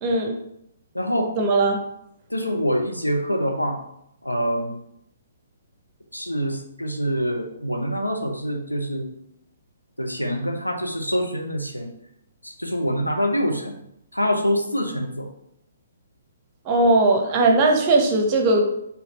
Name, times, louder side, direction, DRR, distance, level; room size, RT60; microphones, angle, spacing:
voice 1, 0.0-0.3 1.4-1.8 16.7-18.6, right 2 dB, 30° right, 3 dB, 0.7 m, -18 dB
voice 2, 0.9-1.3 2.3-3.8 4.2-4.8 6.1-9.1 10.0-11.9 12.4-13.8 14.1-15.3, equal, 85° left, 3 dB, 0.7 m, -25 dB
4.1 x 2.8 x 4.0 m, 0.77 s
figure-of-eight pair, 125°, 0 cm